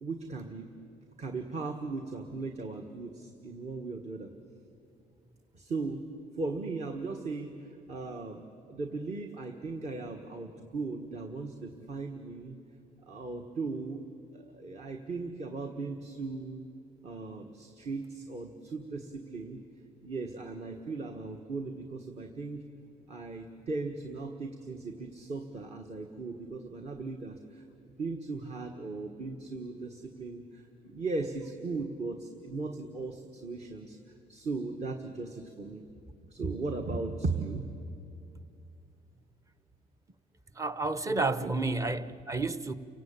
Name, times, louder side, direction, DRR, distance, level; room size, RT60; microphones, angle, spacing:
voice 1, 0.0-0.7 1.2-4.3 5.5-6.0 6.4-8.4 8.7-12.5 13.1-14.0 14.3-16.7 17.0-19.6 20.0-22.6 23.1-34.0 34.3-35.8 36.3-37.7 41.0-42.0, right 3 dB, 40° right, 4 dB, 1.6 m, -37 dB
voice 2, 40.5-42.7, right 3 dB, 20° right, 13 dB, 0.9 m, -31 dB
30.0 x 17.5 x 8.8 m, 2.6 s
cardioid pair, 110°, 17 cm